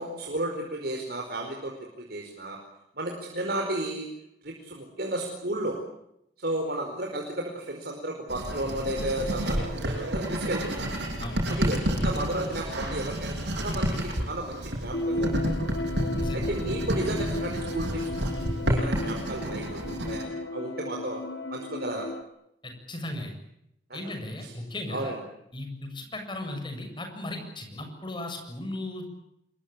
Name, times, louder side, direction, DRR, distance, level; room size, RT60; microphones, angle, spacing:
voice 1, 0.0-2.6 2.9-4.1 4.4-5.8 6.4-10.9 11.5-15.7 16.3-18.0 18.5-20.2 20.5-21.2 21.5-22.1 24.4-24.5 24.9-25.2, right 1 dB, 60° right, 1 dB, 4.8 m, -33 dB
Writing, 8.3-20.2, equal, 80° right, 8.0 m, -30 dB
voice 2, 11.2-11.6 16.2-16.5 22.6-23.4 23.9-25.1 25.5-29.1, left 1 dB, 25° left, 5 dB, 7.2 m, -36 dB
sound 1, 14.9-22.2, left 2 dB, 85° left, 2.4 m, -34 dB
27.0 x 22.0 x 8.8 m, 0.79 s
head